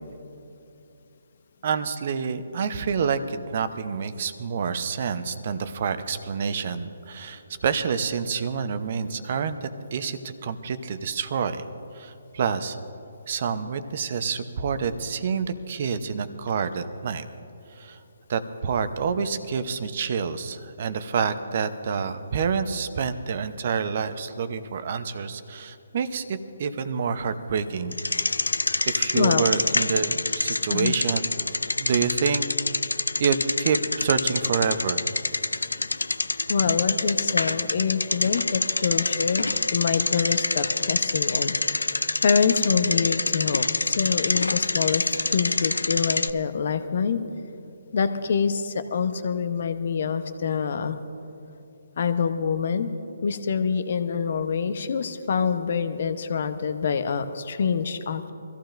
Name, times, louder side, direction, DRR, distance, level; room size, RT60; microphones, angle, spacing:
voice 1, 1.6-11.7 11.9-12.8 13.3-17.3 17.7-18.0 18.3-28.0 28.9-31.3 31.8-32.4 33.2-35.0, right 6 dB, 50° right, 11 dB, 0.8 m, -28 dB
Bicycle, 27.9-46.3, left 2 dB, 90° left, 0.4 m, -26 dB
voice 2, 29.1-29.5 30.7-30.9 36.5-41.5 42.2-45.0 45.3-47.2 47.9-51.0 52.0-52.9 53.2-58.3, left 6 dB, 55° left, 10 dB, 0.8 m, -25 dB
23.5 x 15.0 x 2.6 m, 2.8 s
figure-of-eight pair, 145°, 0 cm